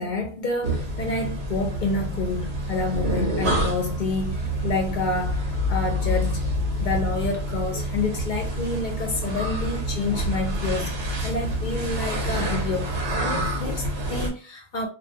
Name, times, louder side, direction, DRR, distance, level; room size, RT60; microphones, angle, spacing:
voice 1, 0.0-6.5 6.8-10.9 11.2-14.9, left 3 dB, 60° left, 0.6 m, -28 dB
sound 1, 0.6-14.3, equal, 85° right, 0.9 m, -27 dB
2.3 x 2.3 x 2.6 m
omnidirectional pair, 1.1 m